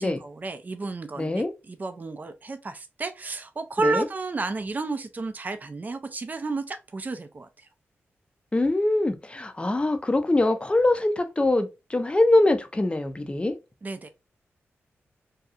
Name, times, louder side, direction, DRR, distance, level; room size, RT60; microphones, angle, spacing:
voice 1, 0.0-7.7 13.8-14.1, right 3 dB, 35° right, 0.4 m, -32 dB
voice 2, 1.2-1.5 3.8-4.1 8.5-13.6, left 2 dB, 20° left, 0.5 m, -23 dB
2.7 x 2.3 x 2.4 m
cardioid pair, 50°, 5 cm